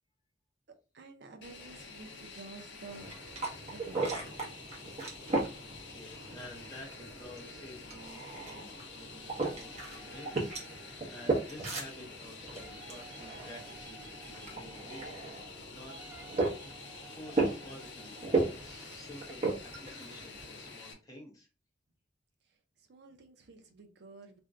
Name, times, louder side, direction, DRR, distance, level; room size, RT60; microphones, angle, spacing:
voice 1, 0.9-3.1 3.7-4.4 22.5-24.4, right 3 dB, 60° right, 6 dB, 0.5 m, -51 dB
Fixed-wing aircraft airplane, 1.4-20.9, left 4 dB, 65° left, 0.6 m, -49 dB
sound 1, 2.9-20.7, right 3 dB, 35° right, 0.8 m, -37 dB
voice 2, 5.4-15.1 15.4-16.0 17.0-21.5, left 1 dB, 20° left, 0 dB, 0.8 m, -51 dB
sound 2, 9.1-11.9 12.5-15.3 15.8-18.8, right 5 dB, 10° right, 1.0 m, -55 dB
2.6 x 2.1 x 3.5 m, 0.33 s
head